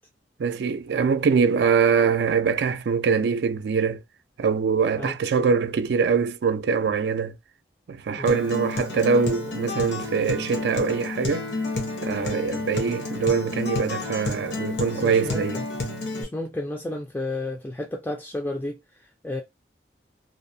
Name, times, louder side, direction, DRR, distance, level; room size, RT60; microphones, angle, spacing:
voice 1, 0.4-4.0 4.4-7.4 7.9-11.5 12.0-15.6, right 5 dB, 70° right, 0.3 m, -23 dB
Acoustic guitar, 8.2-16.2, left 2 dB, 75° left, 0.8 m, -30 dB
voice 2, 15.0-15.6 16.2-19.4, left 1 dB, 10° left, 0.3 m, -32 dB
2.6 x 2.0 x 2.5 m
head